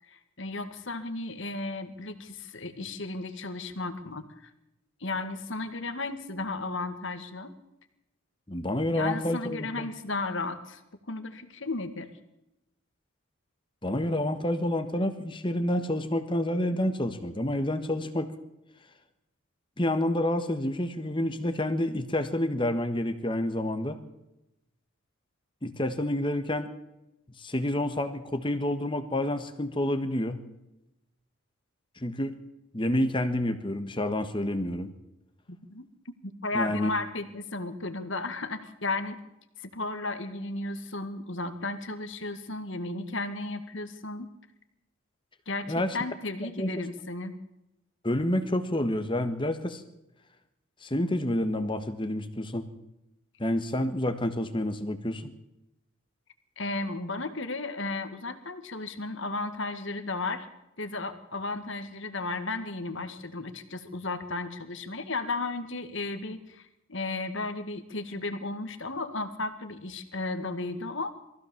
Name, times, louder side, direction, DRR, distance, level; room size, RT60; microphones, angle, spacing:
voice 1, 0.1-4.5 5.0-7.6 8.9-10.8 11.1-12.1 35.5-35.8 36.2-39.2 39.6-44.3 45.5-47.3 56.6-60.5 60.8-71.1, left 2 dB, 60° left, 8 dB, 2.1 m, -34 dB
voice 2, 8.5-9.9 13.8-18.3 19.8-24.0 25.6-26.7 27.4-30.4 32.0-32.3 32.7-34.9 36.5-36.9 45.7-46.0 46.4-46.7 48.0-49.8 50.8-52.7 53.4-55.3, left 1 dB, 25° left, 9 dB, 1.4 m, -28 dB
23.0 x 15.5 x 7.2 m, 0.91 s
head